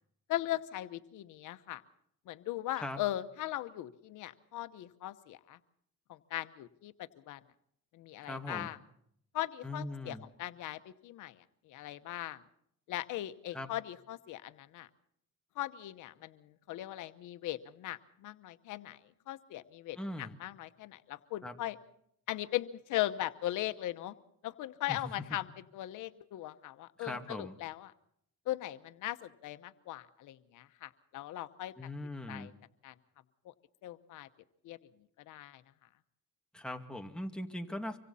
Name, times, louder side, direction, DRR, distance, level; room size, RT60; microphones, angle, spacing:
voice 1, 0.3-1.8 2.3-5.6 6.1-7.4 7.9-8.8 9.3-12.4 12.9-14.9 15.6-19.0 19.3-21.8 22.3-24.1 24.4-25.5 25.7-27.9 28.5-31.7 32.3-32.5 32.8-32.9 33.4-33.5 33.8-34.3 34.6-34.8 35.3-35.6, left 14 dB, 85° left, 11 dB, 1.0 m, -39 dB
voice 2, 8.2-8.7 9.6-10.3 13.5-13.7 20.0-20.4 21.4-21.5 24.9-25.0 27.0-27.5 31.8-32.5 36.5-38.0, left 1 dB, 5° left, 4 dB, 2.2 m, -40 dB
25.5 x 24.5 x 4.2 m, 0.70 s
cardioid pair, 90°, 30 cm